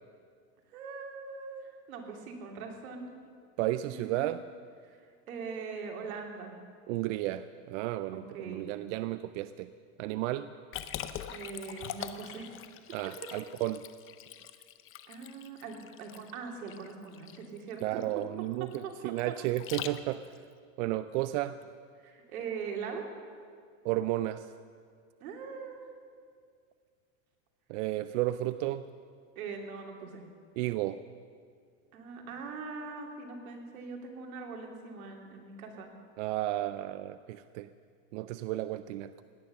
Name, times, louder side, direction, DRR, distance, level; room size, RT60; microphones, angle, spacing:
voice 1, 0.7-3.1 3.8-4.4 4.8-5.0 5.3-6.6 8.1-8.7 11.3-12.5 15.1-18.0 18.4-19.3 22.0-23.0 25.2-25.9 29.4-30.2 31.9-35.9, right 5 dB, 85° right, 1 dB, 3.0 m, -41 dB
voice 2, 3.6-4.4 6.9-9.7 10.0-10.5 12.9-13.8 17.8-20.3 20.8-21.6 23.8-24.5 27.7-28.9 30.6-31.0 36.2-37.7 38.1-39.1, right 15 dB, 60° right, 12 dB, 0.6 m, -33 dB
Liquid, 10.7-20.4, left 11 dB, 30° left, 0.7 m, -43 dB
17.5 x 11.5 x 6.6 m, 2.1 s
supercardioid pair, 130°, 42 cm